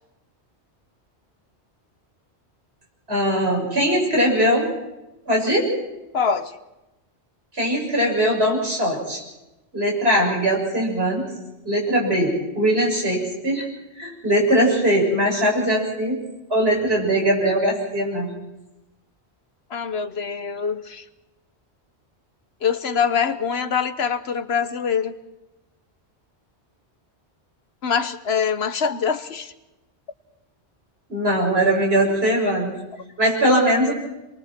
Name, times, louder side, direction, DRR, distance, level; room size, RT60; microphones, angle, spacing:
voice 1, 3.1-4.7 5.3-5.7 7.5-9.2 9.7-11.2 11.6-13.7 14.0-16.2 16.5-18.3 31.1-32.8 33.2-33.9, equal, 65° right, -1 dB, 6.9 m, -20 dB
voice 2, 6.1-6.6 19.7-21.0 22.6-25.1 27.8-29.5, left 6 dB, 65° left, 10 dB, 1.3 m, -24 dB
27.5 x 23.0 x 4.5 m, 0.99 s
omnidirectional pair, 1.1 m